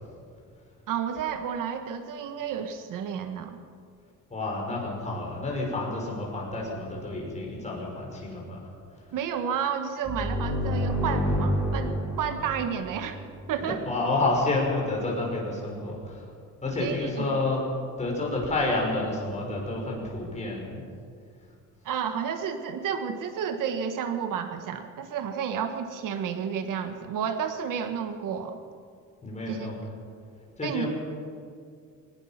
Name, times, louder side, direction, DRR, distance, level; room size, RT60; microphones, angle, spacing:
voice 1, 0.9-3.6 9.1-13.2 13.5-13.8 16.8-17.4 21.8-28.6 29.5-29.7 30.6-30.9, right 7 dB, 75° right, 7 dB, 1.5 m, -31 dB
voice 2, 4.3-8.7 13.6-16.2 16.6-17.6 18.0-20.8 29.2-29.8 30.6-30.9, left 2 dB, 20° left, -2 dB, 5.8 m, -29 dB
sound 1, 10.0-13.6, equal, 5° right, 4.7 m, -29 dB
22.0 x 19.5 x 6.0 m, 2.3 s
cardioid pair, 160°, 32 cm